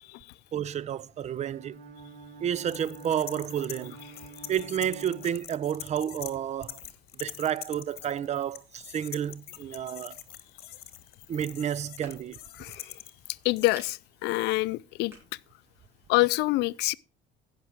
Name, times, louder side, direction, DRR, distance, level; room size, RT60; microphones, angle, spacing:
voice 1, 0.5-1.8 2.4-4.0 4.5-6.8 7.2-10.2 11.3-12.4, right 9 dB, 40° right, 0.4 m, -31 dB
Bowed string instrument, 1.4-6.0, right 4 dB, 70° right, 2.4 m, -47 dB
sound 1, 2.7-6.4 6.6-13.9, left 13 dB, 65° left, 1.2 m, -44 dB
sound 2, 11.1-16.4, equal, 15° right, 4.8 m, -56 dB
voice 2, 12.6-12.9 13.4-15.1 16.1-16.9, left 21 dB, 90° left, 0.4 m, -26 dB
15.5 x 6.0 x 4.6 m
cardioid pair, 110°, 17 cm